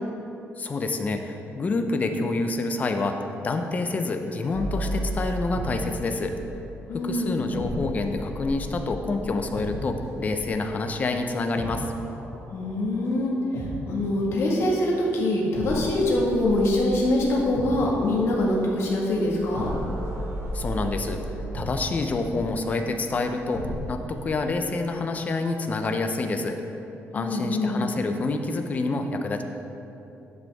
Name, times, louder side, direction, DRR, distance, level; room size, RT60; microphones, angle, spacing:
voice 1, 0.6-6.3 6.9-11.9 20.5-21.2 21.5-26.6 27.1-29.4, left 3 dB, 30° left, 5 dB, 0.7 m, -27 dB
sound 1, 4.5-14.3 15.5-23.9, right 1 dB, 80° right, 2.2 m, -35 dB
voice 2, 6.9-7.4 12.5-19.7 27.1-27.8, left 1 dB, 65° left, -3 dB, 1.8 m, -24 dB
10.5 x 7.8 x 3.6 m, 2.9 s
cardioid pair, 145°, 5 cm